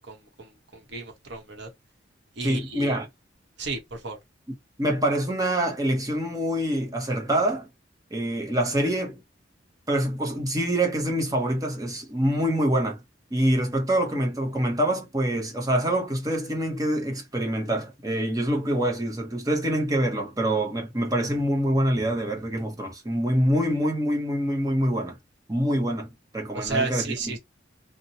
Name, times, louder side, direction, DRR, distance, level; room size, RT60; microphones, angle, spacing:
voice 1, 0.1-1.7 2.4-2.9 3.6-4.2 26.5-27.4, right 3 dB, 70° right, 1.1 m, -32 dB
voice 2, 2.4-3.1 4.8-7.7 8.1-9.2 9.9-13.0 13.3-25.2 25.5-27.2, right 1 dB, 20° right, 0.9 m, -25 dB
2.9 x 2.3 x 2.6 m
head